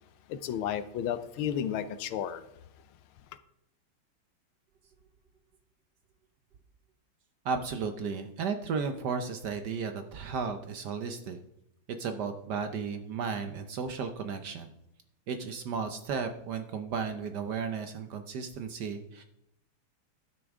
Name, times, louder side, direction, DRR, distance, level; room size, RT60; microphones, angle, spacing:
voice 1, 0.3-2.4, left 9 dB, 75° left, 1.5 m, -32 dB
voice 2, 7.4-11.4 12.0-14.7 15.3-19.2, right 5 dB, 65° right, 1.1 m, -34 dB
12.0 x 9.6 x 3.6 m
omnidirectional pair, 2.4 m